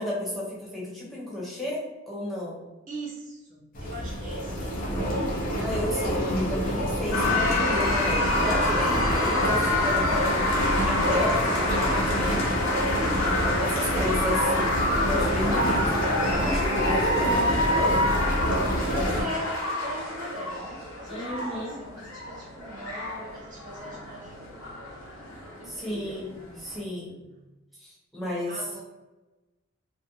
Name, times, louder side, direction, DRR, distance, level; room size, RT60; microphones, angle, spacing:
voice 1, 0.0-2.6 5.6-10.5 10.8-12.4 13.6-16.0 16.4-18.1 21.1-21.7 25.6-27.2 27.8-28.7, left 1 dB, ahead, -7 dB, 0.7 m, -32 dB
voice 2, 2.9-5.0 13.8-14.2 17.0-17.6 18.9-26.2 27.3-27.5 28.5-28.8, equal, 40° right, -3 dB, 0.4 m, -40 dB
sound 1, 3.7-19.2, equal, 40° left, 0.5 m, -27 dB
sound 2, 7.1-26.8, left 1 dB, 80° left, 0.9 m, -28 dB
2.4 x 2.2 x 2.6 m, 1.1 s
head